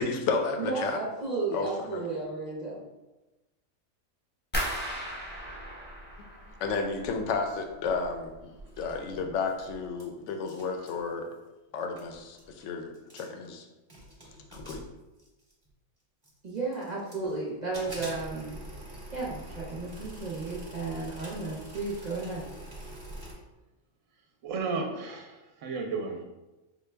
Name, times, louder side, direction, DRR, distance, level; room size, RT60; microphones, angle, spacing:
voice 1, 0.0-1.0 1.5-2.0 6.2-8.3 8.8-11.3 11.7-13.7 14.5-14.8, left 4 dB, 65° left, 4 dB, 0.8 m, -32 dB
voice 2, 0.6-2.8 16.4-18.6 19.1-22.5, right 3 dB, 45° right, -6 dB, 0.6 m, -33 dB
sound 1, 4.5-7.4 7.7-8.4 8.7-9.2 9.6-9.7, equal, 15° left, 0.3 m, -36 dB
sound 2, 8.6-10.0 10.3-11.0 11.7-11.8 12.0-12.5 12.9-13.5 13.9-15.7 16.2-17.3 17.7-23.3, right 1 dB, 20° right, 0.9 m, -45 dB
voice 3, 24.4-26.2, right 4 dB, 70° right, 2 dB, 0.9 m, -33 dB
4.8 x 2.2 x 3.2 m, 1.1 s
omnidirectional pair, 1.5 m